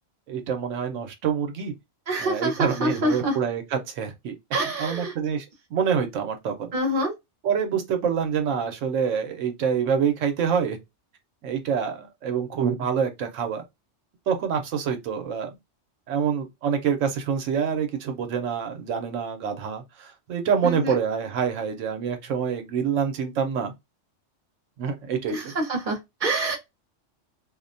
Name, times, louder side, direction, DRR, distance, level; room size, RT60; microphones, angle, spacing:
voice 1, 0.3-1.7 2.2-4.4 4.8-5.5 5.7-6.7 7.4-10.8 11.4-13.6 14.3-15.5 16.1-23.7 24.8-25.5, right 7 dB, 80° right, 1.0 m, -26 dB
voice 2, 2.1-3.4 4.5-5.1 6.7-7.1 20.6-21.0 25.3-26.6, right 1 dB, 45° right, 0.9 m, -26 dB
2.5 x 2.1 x 2.5 m
omnidirectional pair, 1.3 m